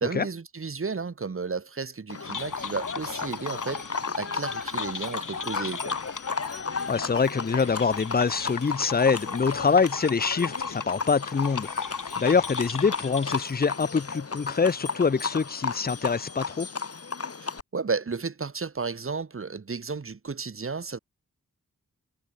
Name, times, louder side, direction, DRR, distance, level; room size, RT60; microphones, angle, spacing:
voice 1, 0.0-3.9 4.1-6.0 17.7-21.0, right 4 dB, 40° right, 1.5 m, -33 dB
Livestock farm animals working animals, 2.1-17.6, left 4 dB, 50° left, 2.2 m, -34 dB
sound 1, 2.2-13.4, left 5 dB, 75° left, 4.9 m, -37 dB
voice 2, 6.9-11.7 12.2-16.7, left 5 dB, 30° left, 0.6 m, -25 dB
wide cardioid pair, 115°, 32 cm